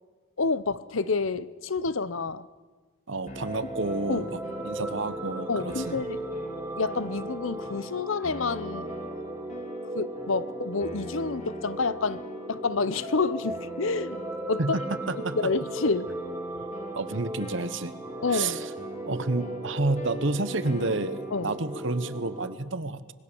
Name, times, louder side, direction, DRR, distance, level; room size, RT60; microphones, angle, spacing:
voice 1, 0.4-2.5 4.1-4.3 5.5-6.3 6.7-8.9 9.9-12.2 12.5-14.2 14.5-14.6 15.1-16.1 18.2-18.7 21.3-21.5, left 4 dB, 75° left, 0.8 m, -29 dB
voice 2, 3.1-6.0 14.6-15.5 17.0-17.9 18.3-18.7 19.1-23.1, right 3 dB, 65° right, 1.1 m, -30 dB
sound 1, 3.2-22.5, right 1 dB, 15° right, 1.6 m, -37 dB
sound 2, 3.3-22.5, equal, 35° left, 1.9 m, -45 dB
25.5 x 21.0 x 7.1 m
head